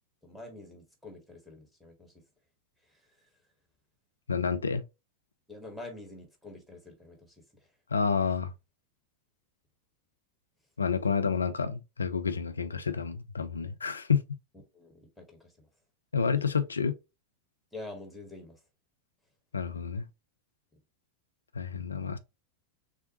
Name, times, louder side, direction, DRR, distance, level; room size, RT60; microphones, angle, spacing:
voice 1, 0.2-2.2 2.9-3.0 5.5-7.7 14.7-15.7 17.7-18.6, left 2 dB, ahead, 1.5 m, -47 dB
voice 2, 4.3-4.8 7.9-8.5 10.8-14.2 16.1-17.0 19.5-20.0 21.6-22.2, left 6 dB, 75° left, 0.5 m, -29 dB
6.3 x 2.1 x 2.8 m
figure-of-eight pair, 90°, 0 cm